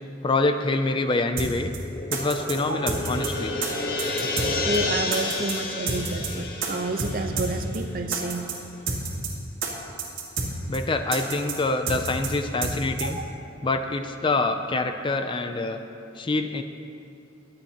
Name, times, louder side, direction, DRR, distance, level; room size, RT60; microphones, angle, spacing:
voice 1, 0.2-1.7 2.1-3.5 10.7-13.2 13.6-15.8 16.2-16.6, left 2 dB, 25° left, 7 dB, 0.4 m, -26 dB
sound 1, 1.4-1.5 1.7-1.8 2.1-2.5 2.9-3.3 3.6-3.7 4.0-4.5 4.7-4.8 5.1-5.5 5.9-6.3 6.6-6.7 7.0-7.1 7.4-7.5 7.7-7.8 8.1-8.5 8.9-9.3 9.6-9.7 10.0-10.5 10.7-10.8 11.1-11.5 11.9-12.3 12.6-12.7 13.0-13.1, right 4 dB, 80° right, 2.1 m, -28 dB
sound 2, 1.8-8.3, left 3 dB, 50° left, 1.2 m, -31 dB
voice 2, 4.7-8.5 13.0-13.2, right 2 dB, 45° right, 6 dB, 0.8 m, -30 dB
23.0 x 8.7 x 2.9 m, 2.7 s
head